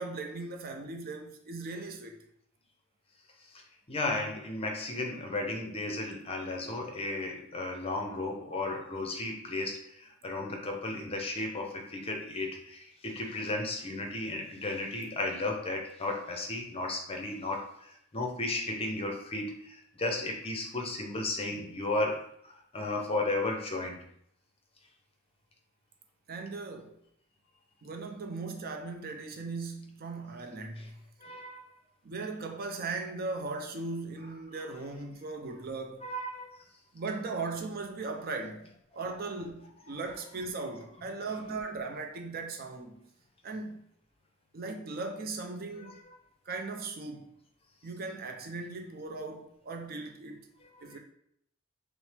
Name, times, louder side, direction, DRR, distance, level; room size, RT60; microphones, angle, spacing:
voice 1, 0.0-2.2 26.3-27.0 27.8-30.9 32.0-36.1 36.9-43.0 43.4-43.8 44.5-46.0 46.5-47.3 47.8-50.5 50.8-51.0, right 3 dB, 45° right, 0.5 m, -38 dB
voice 2, 3.9-24.0 31.2-31.7 36.0-36.6 45.8-45.9 50.9-51.0, left 2 dB, 30° left, 0.7 m, -34 dB
6.0 x 2.0 x 3.3 m
head